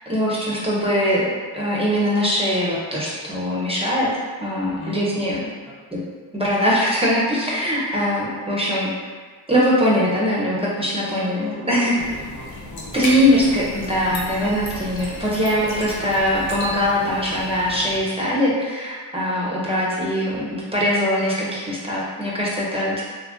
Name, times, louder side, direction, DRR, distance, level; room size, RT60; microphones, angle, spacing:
voice 1, 0.1-4.1 4.4-5.5 5.9-6.0 6.3-8.9 9.5-11.9 12.9-23.0, equal, 10° right, -6 dB, 0.8 m, -21 dB
voice 2, 4.8-5.3 5.6-5.8 10.9-13.3, left 2 dB, 55° left, -6 dB, 1.3 m, -37 dB
sound 1, 12.0-18.0, left 1 dB, 70° left, 0.8 m, -33 dB
2.9 x 2.4 x 3.6 m, 1.5 s
supercardioid pair, 45°, 47 cm